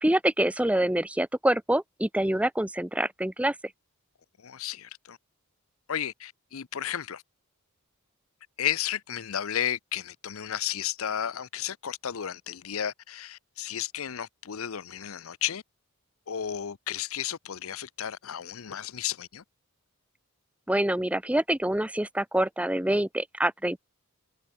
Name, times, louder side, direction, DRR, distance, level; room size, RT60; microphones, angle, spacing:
voice 1, 0.0-3.5 20.7-23.8, right 1 dB, 5° right, 0.7 m, -26 dB
voice 2, 4.4-5.2 5.9-7.2 8.6-15.6 16.3-19.4, left 10 dB, 65° left, 0.7 m, -33 dB
head